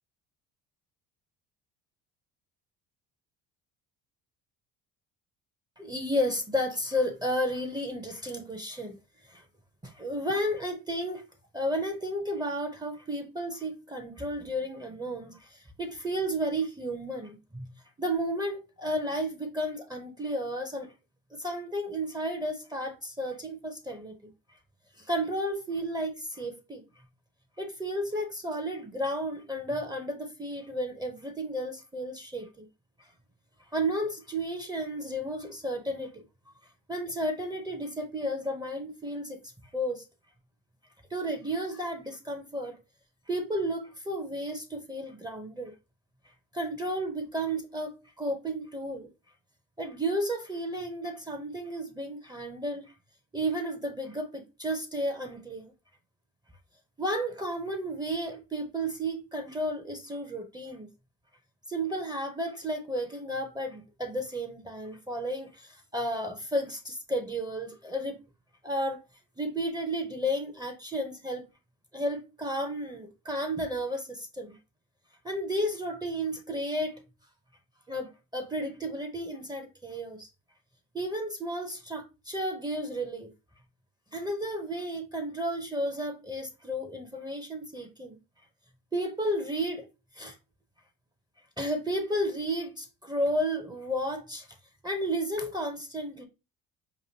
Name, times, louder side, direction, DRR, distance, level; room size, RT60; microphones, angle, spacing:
voice 1, 5.8-9.0 9.3-9.4 9.8-11.2 11.5-17.7 18.0-20.9 21.4-24.2 25.0-26.8 27.6-32.7 33.7-36.2 36.9-39.4 39.7-40.0 41.1-42.8 43.3-45.7 46.5-49.1 49.8-52.9 53.3-55.7 57.0-60.9 61.7-68.2 68.6-69.0 69.4-71.5 71.9-74.6 75.2-77.0 77.9-80.3 80.9-83.3 84.1-88.2 88.9-89.9 90.1-90.4 91.6-94.5 94.8-96.2, equal, 10° right, 0.6 m, -32 dB
4.6 x 3.0 x 2.7 m
supercardioid pair, 90°, 38 cm